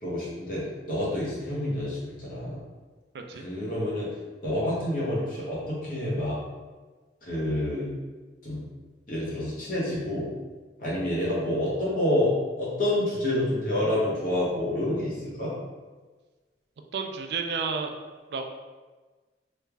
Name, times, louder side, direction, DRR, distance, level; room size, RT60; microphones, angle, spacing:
voice 1, 0.0-2.6 3.3-4.1 4.4-6.4 7.2-7.9 8.4-8.6 9.1-10.3 10.8-15.5, left 1 dB, 50° left, -7 dB, 1.0 m, -28 dB
voice 2, 3.1-3.4 16.9-17.9 18.3-18.5, right 5 dB, 65° right, 5 dB, 0.4 m, -31 dB
3.2 x 2.4 x 3.2 m, 1.3 s
head